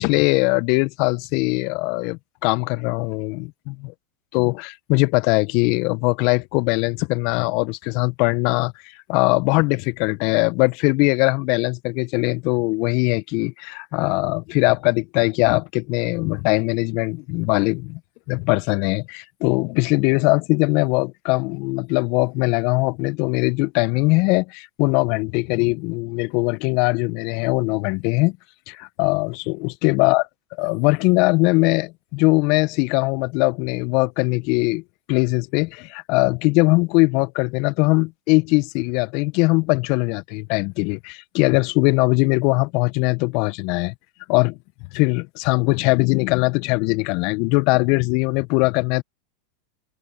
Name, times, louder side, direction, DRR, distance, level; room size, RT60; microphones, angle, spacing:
voice 1, 0.0-3.9 4.3-8.7 9.1-18.0 18.3-28.4 28.7-30.3 30.6-34.8 35.1-43.9 44.3-44.6 44.9-49.0, left 27 dB, 55° left, 1.1 m, -21 dB
open air
hypercardioid pair, 90°, 0 cm